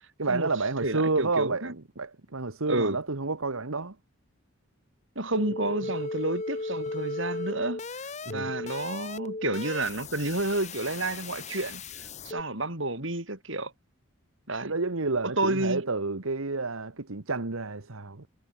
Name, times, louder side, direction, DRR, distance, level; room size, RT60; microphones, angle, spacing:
voice 1, 0.2-4.0 8.2-8.5 14.6-18.3, right 3 dB, 80° right, 1.5 m, -30 dB
voice 2, 0.8-1.7 2.7-3.0 5.2-7.8 8.3-11.8 12.2-13.7 14.5-14.7 15.4-15.8, right 2 dB, 60° right, 5.5 m, -30 dB
sound 1, 5.3-12.4, left 3 dB, 30° left, 1.0 m, -36 dB
head